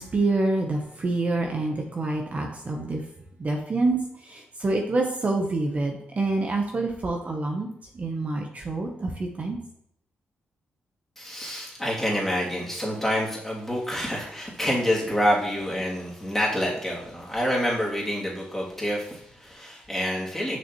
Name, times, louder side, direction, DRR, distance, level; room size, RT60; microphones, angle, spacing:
voice 1, 0.0-3.0 3.4-4.0 4.3-7.7 7.9-9.1 9.4-9.6, right 2 dB, 40° right, 2 dB, 0.9 m, -26 dB
voice 2, 11.2-20.6, equal, 10° left, -5 dB, 2.6 m, -27 dB
6.3 x 6.1 x 3.0 m, 0.74 s
cardioid pair, 70°, 4 cm